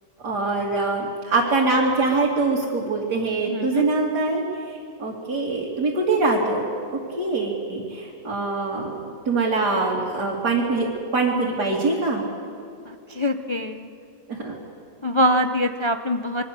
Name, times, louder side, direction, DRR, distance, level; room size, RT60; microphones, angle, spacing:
voice 1, 0.2-6.7 7.2-12.2 14.3-14.5, right 3 dB, 70° right, -5 dB, 3.3 m, -24 dB
voice 2, 3.5-3.9 12.9-13.9 15.0-16.4, equal, 50° left, 7 dB, 0.3 m, -24 dB
25.5 x 23.5 x 6.9 m, 2.5 s
omnidirectional pair, 1.8 m